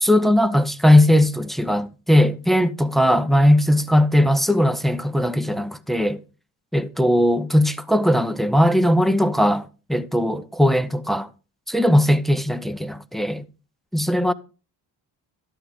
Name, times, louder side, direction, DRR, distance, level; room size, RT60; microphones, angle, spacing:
voice 1, 0.0-6.2 6.7-11.3 11.7-13.4 13.9-14.3, left 1 dB, ahead, 0.8 m, -19 dB
12.5 x 8.5 x 3.7 m
hypercardioid pair, 55°, 50 cm